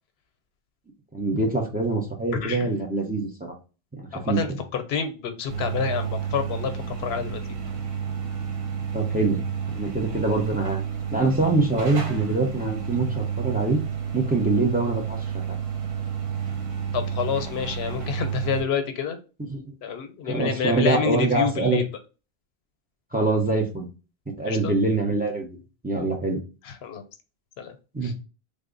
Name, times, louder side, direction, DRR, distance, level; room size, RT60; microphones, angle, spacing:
voice 1, 1.1-3.5 3.9-4.6 8.9-9.4 9.7-10.8 11.1-13.8 14.1-15.6 19.5-19.7 20.2-21.8 23.1-23.9 24.3-25.6 25.8-26.4 27.9-28.1, right 3 dB, 10° right, 1 dB, 0.5 m, -24 dB
voice 2, 4.1-7.4 16.9-19.2 19.8-21.9 24.4-24.7 26.6-27.0 27.6-27.7 28.0-28.1, left 7 dB, 85° left, 8 dB, 0.8 m, -28 dB
sound 1, 5.5-18.6, right 7 dB, 85° right, 1.0 m, -30 dB
3.5 x 2.0 x 3.7 m, 0.32 s
omnidirectional pair, 1.1 m